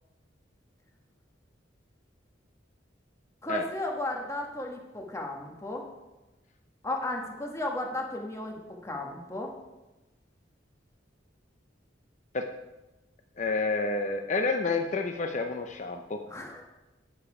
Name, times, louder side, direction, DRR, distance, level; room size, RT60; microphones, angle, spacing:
voice 1, 3.4-5.8 6.8-8.6 8.8-9.5 16.3-16.6, left 1 dB, 15° left, 0 dB, 1.2 m, -34 dB
voice 2, 13.4-16.2, left 3 dB, 40° left, 5 dB, 0.5 m, -29 dB
9.4 x 6.9 x 4.8 m, 1.1 s
head